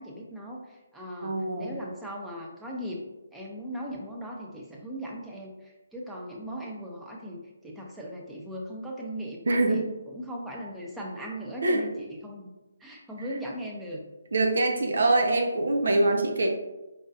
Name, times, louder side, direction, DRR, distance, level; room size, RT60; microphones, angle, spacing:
voice 1, 0.0-3.0 3.3-9.8 10.1-12.5 12.8-14.0, equal, 5° right, -3 dB, 0.7 m, -38 dB
voice 2, 1.2-1.7 9.5-9.8 11.6-11.8 14.3-16.5, right 2 dB, 70° right, 2 dB, 0.8 m, -24 dB
5.0 x 3.8 x 2.6 m, 1.1 s
figure-of-eight pair, 150°, 0 cm